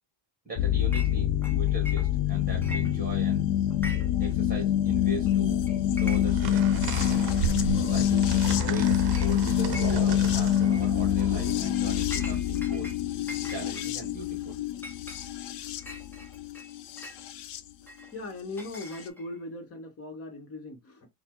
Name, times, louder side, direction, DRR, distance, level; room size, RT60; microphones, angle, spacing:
voice 1, 0.4-3.4 4.2-5.6 5.9-6.9 7.9-8.3 8.6-12.9 13.4-14.6, right 2 dB, 20° right, 1.4 m, -40 dB
sound 1, 0.6-17.6 18.8-18.9, left 11 dB, 65° left, 0.6 m, -26 dB
Chink clink, 0.9-1.1 1.4-2.3 2.6-3.3 3.7-4.3 4.5-4.6 5.3-5.4 5.7-6.5 6.9-7.0 7.9-8.0 8.4-8.7 9.1-9.3 9.7-10.2 10.6-10.9 11.4-13.0 13.3-17.2 17.9-19.4, equal, 5° left, 0.3 m, -43 dB
sound 2, 6.3-12.3, right 9 dB, 55° right, 0.7 m, -35 dB
voice 2, 18.1-21.1, left 2 dB, 30° left, 0.9 m, -39 dB
4.0 x 2.1 x 4.3 m
cardioid pair, 165°, 47 cm